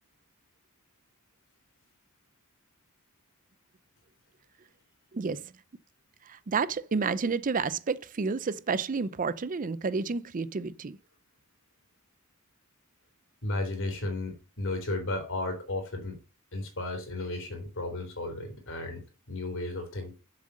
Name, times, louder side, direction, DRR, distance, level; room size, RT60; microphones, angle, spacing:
voice 1, 5.1-5.5 6.3-11.0, right 4 dB, 35° right, 0.5 m, -30 dB
voice 2, 13.4-16.2 16.5-20.1, left 2 dB, 60° left, 3.7 m, -34 dB
7.5 x 7.5 x 6.3 m
head